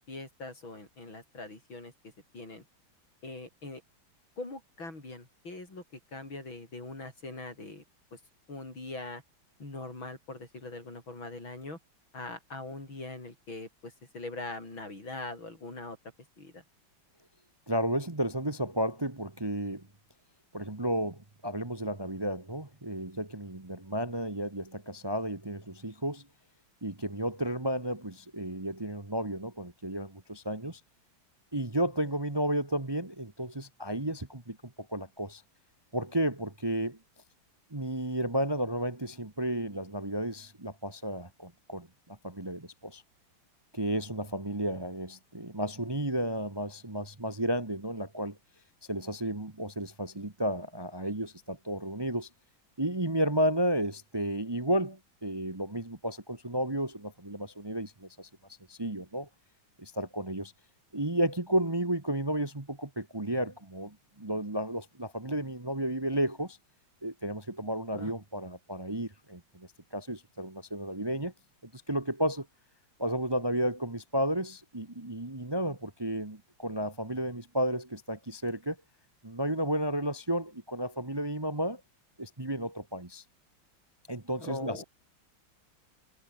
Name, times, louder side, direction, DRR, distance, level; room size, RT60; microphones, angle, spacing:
voice 1, 0.0-1.9 2.3-2.6 3.2-3.8 4.4-5.8 6.1-7.8 8.1-8.2 8.5-9.2 9.6-11.8 12.1-16.0 16.4-16.6 67.9-68.1 84.4-84.8, left 2 dB, 75° left, 8.4 m, -42 dB
voice 2, 17.7-19.9 20.5-26.2 26.8-30.8 31.5-35.4 35.9-37.0 37.7-43.0 43.7-48.4 48.9-52.3 52.8-58.3 58.7-59.3 59.8-60.5 60.9-66.6 67.0-71.3 71.7-72.5 73.0-78.8 79.2-81.8 82.2-83.2 84.1-84.8, right 1 dB, 15° right, 1.2 m, -32 dB
omnidirectional pair, 2.2 m